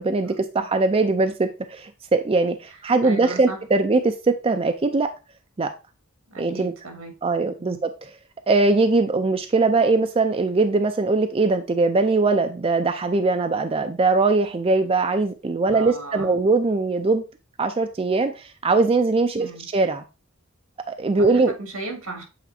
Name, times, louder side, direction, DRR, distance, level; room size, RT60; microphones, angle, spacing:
voice 1, 0.0-5.1 5.6-5.7 6.4-6.7 7.2-8.1 8.5-17.2 17.6-20.0 20.9-21.5, right 3 dB, 25° right, 7 dB, 0.4 m, -21 dB
voice 2, 3.0-3.6 6.3-7.1 7.4-7.8 15.7-16.3 19.4-19.7 21.3-22.2, right 2 dB, 90° right, 3 dB, 2.1 m, -36 dB
8.4 x 4.2 x 2.7 m, 0.29 s
head